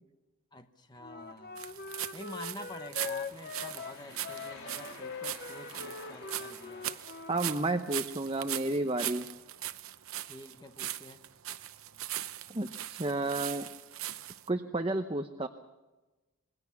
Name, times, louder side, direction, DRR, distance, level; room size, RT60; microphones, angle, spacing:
voice 1, 0.5-1.6 2.1-6.9 10.3-11.2, left 1 dB, 20° left, 7 dB, 1.2 m, -48 dB
Wind instrument woodwind instrument, 1.0-7.6, left 4 dB, 45° left, 0.9 m, -42 dB
sound 1, 1.6-14.5, right 13 dB, 70° right, 0.8 m, -40 dB
sound 2, 2.6-8.1, left 3 dB, 85° left, 4.6 m, -52 dB
voice 2, 7.3-9.3 12.5-13.7 14.5-15.5, right 2 dB, 25° right, 6 dB, 0.8 m, -31 dB
26.5 x 21.5 x 6.0 m, 1.1 s
head